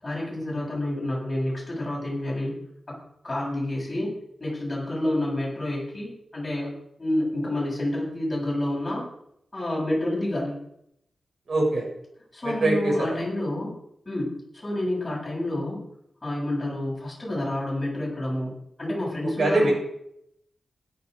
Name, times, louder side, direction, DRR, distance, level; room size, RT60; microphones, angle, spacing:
voice 1, 0.0-2.6 3.2-4.1 4.4-6.7 7.0-9.0 9.5-10.6 12.3-13.7 14.1-15.8 16.2-18.5 18.8-19.7, left 1 dB, 20° left, -5 dB, 7.8 m, -29 dB
voice 2, 11.5-11.8 12.6-13.1 19.4-19.7, right 2 dB, 55° right, -1 dB, 7.7 m, -22 dB
17.0 x 12.0 x 5.2 m, 0.75 s
wide cardioid pair, 155°, 0 cm